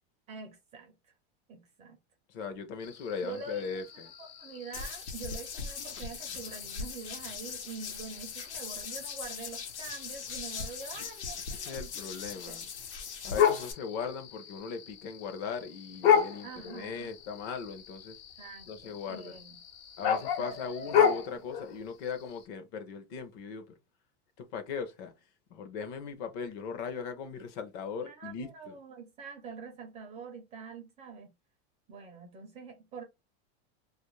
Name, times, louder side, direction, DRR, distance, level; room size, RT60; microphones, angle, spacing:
voice 1, 0.3-1.1 1.5-2.0 3.2-11.7 12.3-12.6 16.4-17.1 18.4-19.6 20.1-20.6 20.8-21.1 28.0-31.3 31.9-33.0, right 5 dB, 20° right, 0.4 m, -45 dB
voice 2, 2.3-4.1 11.5-12.7 13.2-18.2 18.7-19.4 20.0-23.6 24.4-25.1 25.5-28.7, left 6 dB, 40° left, 0.6 m, -39 dB
sound 1, 2.8-22.5, left 8 dB, 65° left, 1.0 m, -34 dB
sound 2, 4.7-13.7, left 6 dB, 90° left, 1.1 m, -40 dB
2.5 x 2.4 x 3.0 m
supercardioid pair, 155°, 33 cm